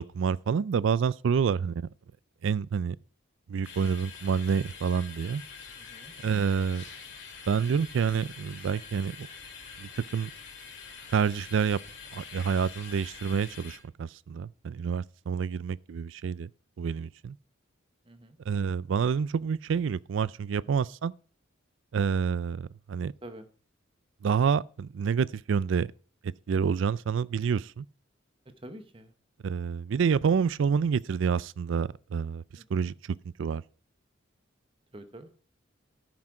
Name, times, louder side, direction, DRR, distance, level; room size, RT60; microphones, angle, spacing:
voice 1, 0.0-1.9 2.4-3.0 3.5-5.4 6.2-6.8 7.5-9.3 9.8-10.3 11.1-11.8 12.1-16.5 16.8-17.4 18.5-21.1 21.9-23.1 24.2-25.9 26.5-27.9 29.4-32.4 32.7-32.9 33.4-33.6, right 6 dB, 70° right, 0.3 m, -28 dB
sound 1, 3.6-13.8, left 5 dB, 65° left, 2.4 m, -45 dB
voice 2, 5.8-6.1 18.1-18.4 23.2-23.5 28.6-29.1 32.5-32.9 34.9-35.3, right 1 dB, 25° right, 0.9 m, -47 dB
13.0 x 6.2 x 4.7 m
head